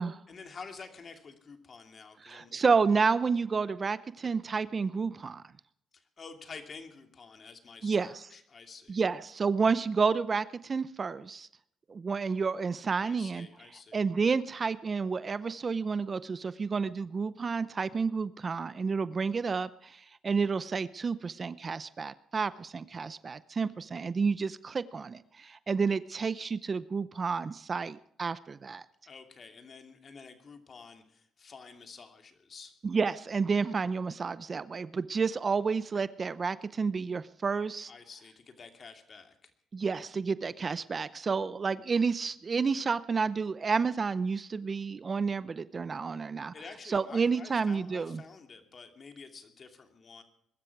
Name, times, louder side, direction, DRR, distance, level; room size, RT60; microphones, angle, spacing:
voice 1, 0.3-2.5 5.9-9.0 13.0-14.0 29.1-32.7 37.9-39.5 46.5-50.2, left 5 dB, 45° left, 6 dB, 2.7 m, -49 dB
voice 2, 2.2-5.4 7.8-8.2 8.9-11.5 11.9-13.5 13.9-28.8 32.8-37.9 39.7-46.5 46.9-48.2, right 5 dB, 35° right, 16 dB, 0.6 m, -30 dB
22.0 x 12.5 x 4.7 m, 0.69 s
cardioid pair, 90°, 0 cm